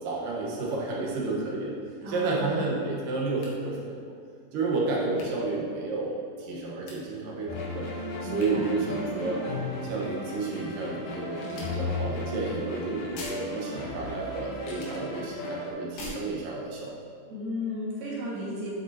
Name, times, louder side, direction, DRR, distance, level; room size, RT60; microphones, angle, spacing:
voice 1, 0.0-1.7 2.1-4.0 4.5-7.9 8.2-9.4 9.8-17.0, right 3 dB, 70° right, -4 dB, 2.9 m, -31 dB
sound 1, 1.9-2.4 3.4-3.6 5.1-5.4 6.9-7.1 8.4-8.5 9.9-10.4 11.4-11.8 13.2-13.5 14.5-15.0 16.0-16.2, left 2 dB, 85° left, 3.2 m, -44 dB
voice 2, 2.0-2.6 8.2-9.1 17.3-18.7, left 1 dB, 90° right, -6 dB, 3.8 m, -35 dB
sound 2, 7.5-15.7, left 2 dB, 70° left, 2.7 m, -35 dB
9.5 x 8.0 x 2.9 m, 2.2 s
omnidirectional pair, 4.1 m